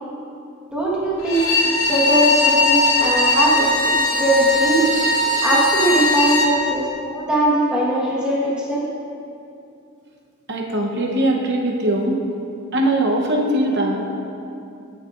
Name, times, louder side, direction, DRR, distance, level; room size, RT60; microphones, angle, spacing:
voice 1, 0.7-1.5 1.9-4.9 5.4-8.9, right 1 dB, 5° right, -7 dB, 1.4 m, -20 dB
Bowed string instrument, 1.2-6.5, left 2 dB, 60° left, 1.0 m, -19 dB
voice 2, 10.5-12.2 12.7-14.2, right 1 dB, 50° right, 0 dB, 0.9 m, -21 dB
12.5 x 6.7 x 2.5 m, 2.6 s
head